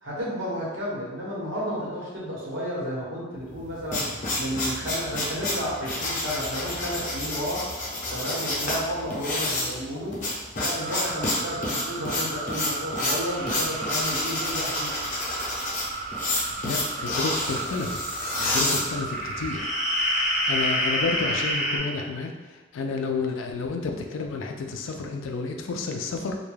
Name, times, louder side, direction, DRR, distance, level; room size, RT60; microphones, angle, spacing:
voice 1, 0.0-4.1 4.4-7.7 8.1-10.2 10.6-14.9, equal, 85° right, -6 dB, 0.9 m, -32 dB
sound 1, 3.5-19.5, left 2 dB, 45° left, 0.6 m, -29 dB
sound 2, 10.6-21.5, right 4 dB, 45° right, 0.3 m, -36 dB
sound 3, 13.3-17.8 18.2-18.3 19.0-21.8, left 1 dB, ahead, 0.6 m, -30 dB
voice 2, 16.6-19.7 20.5-26.4, left 4 dB, 90° left, 3 dB, 0.3 m, -31 dB
2.2 x 2.2 x 3.2 m, 1.2 s
head